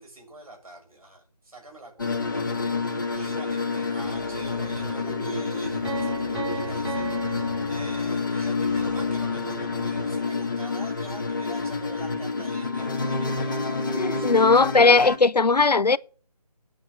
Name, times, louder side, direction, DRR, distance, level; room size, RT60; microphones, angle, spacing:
voice 1, 0.0-14.3, right 2 dB, 60° right, 7.5 m, -45 dB
sound 1, 2.0-15.2, left 4 dB, 30° left, 1.6 m, -28 dB
sound 2, 4.0-10.3, equal, 85° right, 5.4 m, -40 dB
Piano, 5.8-8.6, right 4 dB, 45° right, 6.6 m, -36 dB
voice 2, 14.0-16.0, left 3 dB, 85° left, 0.7 m, -18 dB
9.6 x 8.6 x 7.8 m
figure-of-eight pair, 160°, 20 cm